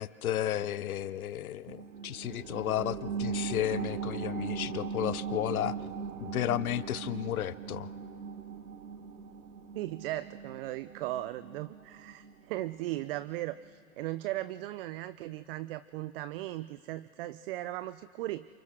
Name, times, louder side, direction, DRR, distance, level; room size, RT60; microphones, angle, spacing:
voice 1, 0.0-5.8 6.2-7.9, left 12 dB, 90° left, 16 dB, 0.6 m, -33 dB
sound 1, 1.7-12.8 13.2-13.3, right 6 dB, 85° right, 1.2 m, -39 dB
voice 2, 9.7-18.5, right 16 dB, 45° right, 14 dB, 0.5 m, -37 dB
29.0 x 27.5 x 3.7 m, 2.4 s
hypercardioid pair, 120°, 42 cm